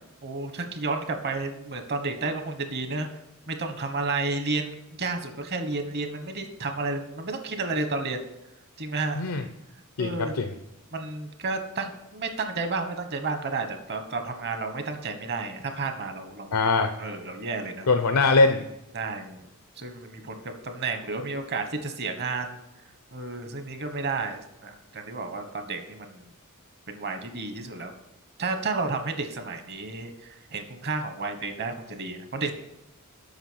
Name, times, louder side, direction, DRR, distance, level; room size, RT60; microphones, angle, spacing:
voice 1, 0.2-3.1 3.5-8.2 8.8-9.2 10.0-10.3 10.9-16.6 17.0-17.9 18.9-19.4 19.8-22.6 23.1-26.3 26.9-27.9 28.4-32.5, right 3 dB, 50° right, 7 dB, 1.3 m, -31 dB
voice 2, 10.0-10.5 16.5-16.9 17.9-18.6, left 3 dB, 75° left, 6 dB, 0.7 m, -22 dB
8.0 x 6.1 x 6.3 m, 0.90 s
head